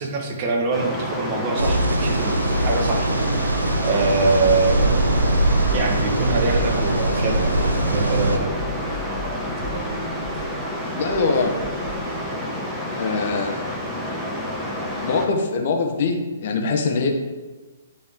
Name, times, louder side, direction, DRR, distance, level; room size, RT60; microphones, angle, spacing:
voice 1, 0.0-3.1 3.8-5.0 5.7-8.5, right 3 dB, 40° right, 1 dB, 1.6 m, -24 dB
sound 1, 0.7-15.3, left 1 dB, 5° right, 1.3 m, -29 dB
sound 2, 1.6-8.4, right 1 dB, 90° right, 0.7 m, -22 dB
sound 3, 4.0-12.3, equal, 65° right, 1.4 m, -34 dB
voice 2, 10.9-11.5 12.9-13.6 15.0-17.1, left 4 dB, 50° left, 3 dB, 1.2 m, -23 dB
10.0 x 4.1 x 3.7 m, 1.3 s
figure-of-eight pair, 125°, 0 cm